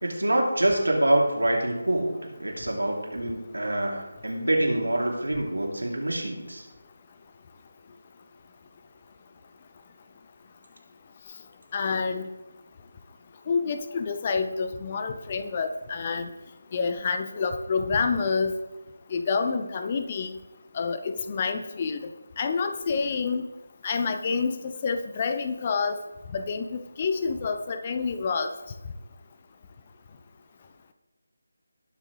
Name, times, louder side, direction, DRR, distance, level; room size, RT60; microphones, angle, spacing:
voice 1, 0.0-6.6, right 1 dB, 70° right, 0 dB, 3.1 m, -26 dB
voice 2, 11.7-12.3 13.5-16.3 16.7-18.6 19.1-20.4 20.7-22.0 22.4-23.4 23.8-26.0 26.3-28.5, left 5 dB, 25° left, 8 dB, 0.6 m, -28 dB
20.0 x 7.1 x 3.3 m, 1.1 s
figure-of-eight pair, 160°, 0 cm